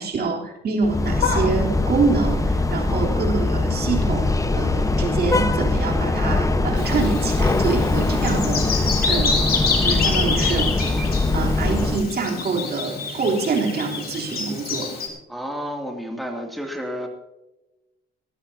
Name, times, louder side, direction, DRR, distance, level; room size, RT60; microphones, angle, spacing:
voice 1, 0.0-10.7 11.0-14.9, right 4 dB, 55° right, -1 dB, 3.3 m, -26 dB
sound 1, 0.8-12.0, left 2 dB, 15° left, 1.1 m, -22 dB
sound 2, 1.2-3.8 4.2-4.6 4.9-8.9 9.2-9.3 10.3-10.4, left 5 dB, 80° left, 3.2 m, -35 dB
voice 2, 2.9-3.2 15.3-17.1, equal, ahead, 1 dB, 2.5 m, -31 dB
Bird vocalization bird call bird song, 6.8-15.1, left 4 dB, 50° left, 4.0 m, -27 dB
18.5 x 16.0 x 2.8 m, 0.98 s
cardioid pair, 90°, 20 cm